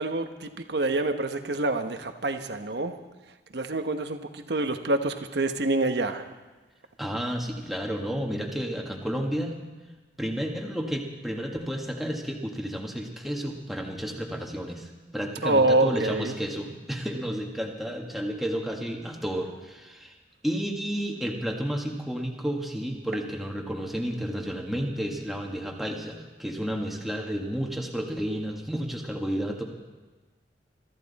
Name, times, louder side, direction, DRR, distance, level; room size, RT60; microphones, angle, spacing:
voice 1, 0.0-2.9 3.5-6.3 15.4-16.3, right 2 dB, 65° right, 7 dB, 1.1 m, -26 dB
voice 2, 7.0-9.6 10.2-20.1 20.4-29.6, equal, ahead, 0 dB, 1.7 m, -31 dB
22.5 x 14.0 x 4.2 m, 1.3 s
head